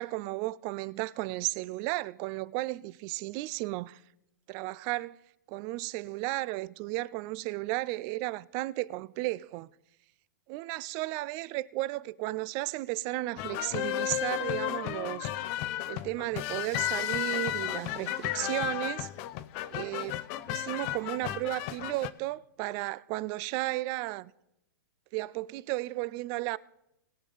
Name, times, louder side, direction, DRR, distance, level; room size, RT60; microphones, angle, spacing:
voice 1, 0.0-4.0 4.5-5.2 5.5-9.7 10.5-15.3 15.9-19.1 19.7-24.3 25.1-26.6, right 19 dB, 30° right, 0.3 m, -34 dB
sound 1, 13.4-22.1, left 14 dB, 40° left, 0.6 m, -33 dB
20.5 x 7.4 x 4.0 m
hypercardioid pair, 140°, 11 cm